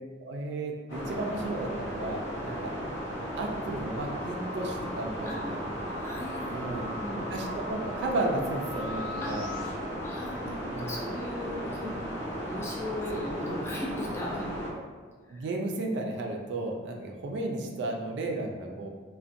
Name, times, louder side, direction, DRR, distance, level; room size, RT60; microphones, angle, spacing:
voice 1, 0.2-2.7 3.4-5.6 6.5-7.0 7.3-9.5 9.8-9.9 10.7-11.0 13.1-13.2 14.7-14.8 15.3-18.9, right 2 dB, 65° right, 2 dB, 0.3 m, -34 dB
sound 1, 0.9-14.7, equal, 75° left, 0.7 m, -36 dB
sound 2, 4.0-9.7, left 1 dB, 50° left, 1.0 m, -42 dB
voice 2, 5.8-7.2 9.2-9.4 10.0-12.0 12.4-14.6 15.3-15.5, left 1 dB, 15° left, -3 dB, 0.4 m, -37 dB
2.5 x 2.1 x 2.5 m, 1.5 s
head